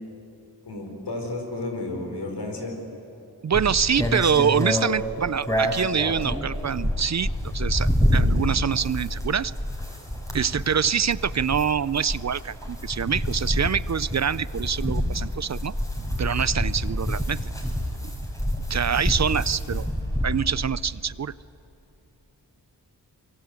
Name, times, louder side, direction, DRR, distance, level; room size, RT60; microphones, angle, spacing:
voice 1, 0.6-2.8 19.1-19.2, left 2 dB, 80° left, 3 dB, 4.7 m, -32 dB
voice 2, 3.4-9.5 10.3-15.7 16.2-17.4 18.7-19.9 20.2-21.3, right 7 dB, 45° right, 19 dB, 0.5 m, -25 dB
sound 1, 3.5-20.8, equal, 10° left, 5.4 m, -27 dB
25.0 x 23.0 x 8.2 m, 2.9 s
cardioid pair, 50°, 41 cm